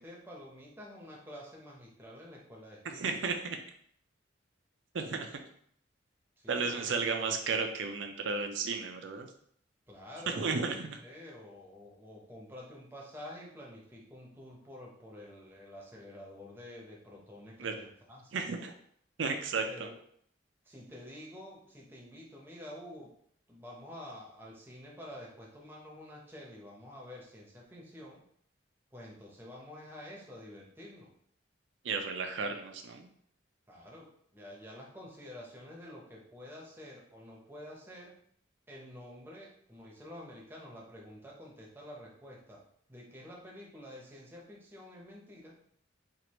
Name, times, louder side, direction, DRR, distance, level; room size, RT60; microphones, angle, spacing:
voice 1, 0.0-3.1 6.4-6.9 9.9-10.6 11.0-18.4 19.7-20.0 20.6-23.1 23.5-28.2 28.9-31.1 33.7-38.2 38.7-45.6, left 1 dB, 10° right, -3 dB, 0.8 m, -49 dB
voice 2, 2.8-3.6 4.9-5.4 6.5-9.3 10.3-11.0 17.6-17.7 18.3-18.7 19.2-19.9 31.8-33.1, right 4 dB, 75° right, 5 dB, 0.5 m, -33 dB
4.6 x 2.5 x 2.9 m, 0.64 s
head